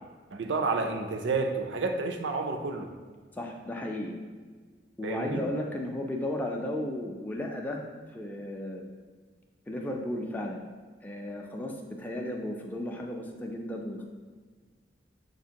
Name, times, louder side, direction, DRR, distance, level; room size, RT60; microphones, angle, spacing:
voice 1, 0.3-2.9 5.0-5.5, right 3 dB, 90° right, 5 dB, 0.4 m, -30 dB
voice 2, 3.3-4.1 5.0-7.8 8.1-8.8 9.7-10.6 11.0-14.0, left 1 dB, 10° left, 1 dB, 0.3 m, -34 dB
5.9 x 2.5 x 2.8 m, 1.5 s
head